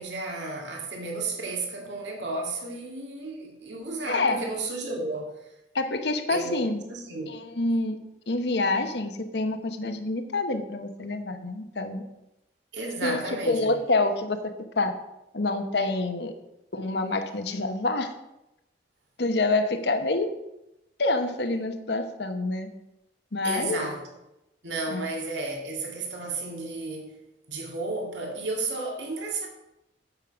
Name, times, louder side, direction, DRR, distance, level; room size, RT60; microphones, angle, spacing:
voice 1, 0.0-5.4 6.3-6.6 6.9-7.3 11.0-11.1 12.7-13.8 23.4-24.0 24.6-27.1 27.5-29.5, right 3 dB, 75° right, 0 dB, 2.1 m, -33 dB
voice 2, 4.1-4.4 5.7-6.8 7.3-8.0 8.3-12.0 13.0-14.4 14.8-14.9 15.3-16.3 16.7-18.1 19.2-20.3 21.0-22.7 23.3-23.9 24.9-25.1, left 2 dB, 65° left, 7 dB, 1.0 m, -27 dB
9.0 x 7.6 x 5.1 m, 0.90 s
head